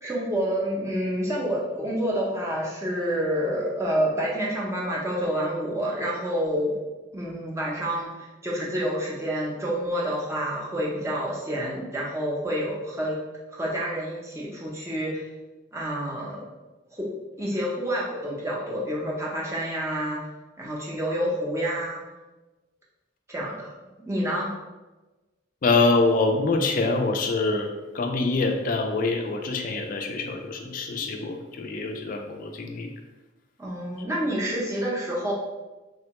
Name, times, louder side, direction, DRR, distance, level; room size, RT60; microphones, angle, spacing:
voice 1, 0.0-6.8 7.1-13.2 13.5-15.3 15.7-16.5 16.9-17.1 17.4-20.3 20.6-22.0 23.3-23.7 24.0-24.5 33.6-35.3, equal, 15° right, -4 dB, 0.5 m, -28 dB
voice 2, 25.6-32.9, left 3 dB, 40° left, 3 dB, 0.3 m, -25 dB
3.4 x 2.2 x 2.8 m, 1.2 s
head